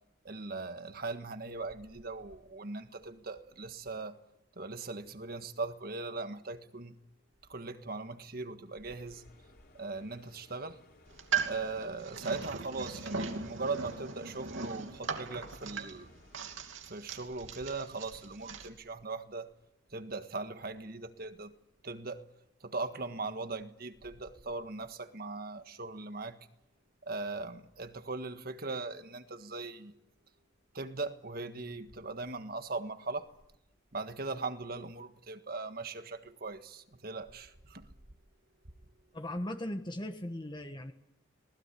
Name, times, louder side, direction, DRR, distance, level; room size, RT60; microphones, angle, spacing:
voice 1, 0.2-4.2 4.6-6.9 7.5-9.2 9.7-10.8 11.4-16.1 16.9-19.5 19.9-21.5 21.8-22.2 22.6-26.4 27.1-29.9 30.7-33.3 33.9-37.9, right 3 dB, 50° right, 1.6 m, -39 dB
sound 1, 8.7-16.7, left 2 dB, 50° left, 3.5 m, -62 dB
sound 2, 11.1-18.7, right 5 dB, 90° right, 2.8 m, -39 dB
voice 2, 39.1-40.9, left 1 dB, 25° left, 1.4 m, -38 dB
27.0 x 19.5 x 8.5 m
head